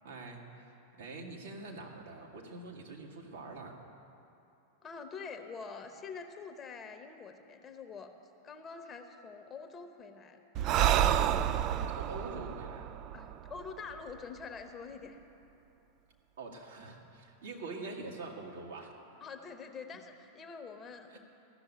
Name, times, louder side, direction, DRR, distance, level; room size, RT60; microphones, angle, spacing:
voice 1, 0.0-0.7 1.0-3.8 11.9-12.9 16.4-18.9 21.1-21.2, right 3 dB, 65° right, -1 dB, 1.8 m, -45 dB
voice 2, 4.8-8.1 8.4-10.4 13.1-15.2 19.2-21.2, left 5 dB, 25° left, 6 dB, 1.0 m, -45 dB
Breathing, 10.5-14.1, right 10 dB, 35° right, 0.4 m, -30 dB
15.0 x 6.9 x 9.4 m, 2.8 s
figure-of-eight pair, 90°, 0 cm